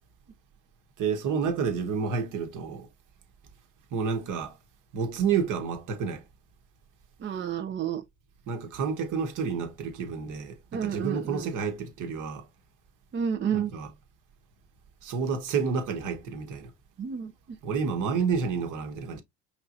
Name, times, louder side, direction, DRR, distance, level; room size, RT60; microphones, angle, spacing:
voice 1, 1.0-2.9 3.9-4.5 4.9-6.2 8.5-12.5 13.5-13.9 15.0-16.7 17.6-19.2, right 6 dB, 55° right, 1.2 m, -29 dB
voice 2, 7.2-8.0 10.7-11.5 13.1-13.7 17.0-17.6, right 8 dB, 30° right, 0.6 m, -30 dB
5.2 x 3.0 x 2.6 m
hypercardioid pair, 75°, 37 cm